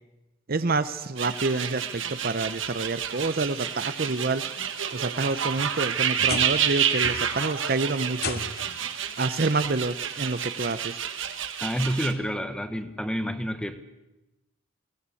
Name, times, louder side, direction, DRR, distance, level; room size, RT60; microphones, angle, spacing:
voice 1, 0.5-4.4 4.9-8.4 9.2-11.0, right 3 dB, 45° right, 12 dB, 0.7 m, -28 dB
sound 1, 1.2-12.1, right 8 dB, 60° right, 1.7 m, -29 dB
sound 2, 5.3-6.7 7.0-7.5 8.1-8.8 10.0-10.1 10.7-10.8 12.4-12.5, left 4 dB, 45° left, 2.1 m, -36 dB
voice 2, 11.6-13.8, equal, 5° left, 9 dB, 1.2 m, -29 dB
23.0 x 18.5 x 8.5 m, 1.0 s
head